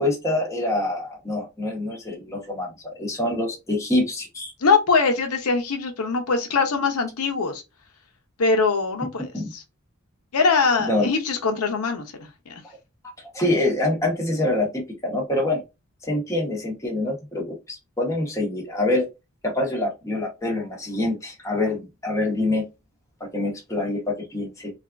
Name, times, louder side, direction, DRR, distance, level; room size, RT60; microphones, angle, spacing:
voice 1, 0.0-2.7 3.0-4.5 9.3-9.5 10.8-11.1 13.3-15.6 16.0-19.1 19.4-22.6 23.2-24.7, left 2 dB, 15° left, 0.9 m, -25 dB
voice 2, 4.6-7.6 8.4-9.6 10.3-12.5, left 4 dB, 90° left, 0.7 m, -22 dB
3.4 x 2.3 x 2.3 m
head